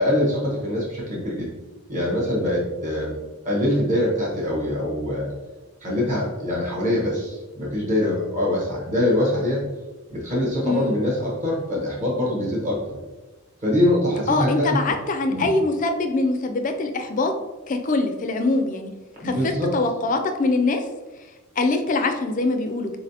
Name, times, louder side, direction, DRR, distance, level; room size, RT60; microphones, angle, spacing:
voice 1, 0.0-1.5 1.9-3.2 3.4-5.3 5.8-9.6 10.1-13.0 13.6-14.8 15.3-15.5 19.2-19.7, left 1 dB, 35° right, -4 dB, 1.0 m, -23 dB
voice 2, 10.6-11.0 14.3-17.3 17.7-18.9 19.2-20.8 21.6-22.9, left 3 dB, 35° left, 6 dB, 0.4 m, -23 dB
4.1 x 3.8 x 2.8 m, 1.2 s
head